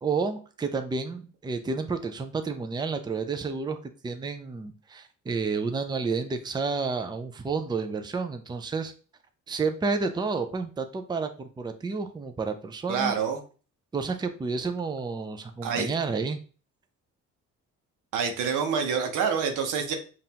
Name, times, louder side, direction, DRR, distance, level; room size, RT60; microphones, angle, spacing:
voice 1, 0.0-3.8 4.0-8.9 9.5-13.1 13.9-16.4, right 4 dB, 15° right, 7 dB, 0.5 m, -30 dB
voice 2, 12.9-13.4 15.6-15.9 18.1-20.0, right 6 dB, 85° right, 5 dB, 0.8 m, -27 dB
5.3 x 2.6 x 2.8 m, 0.38 s
cardioid pair, 90°, 30 cm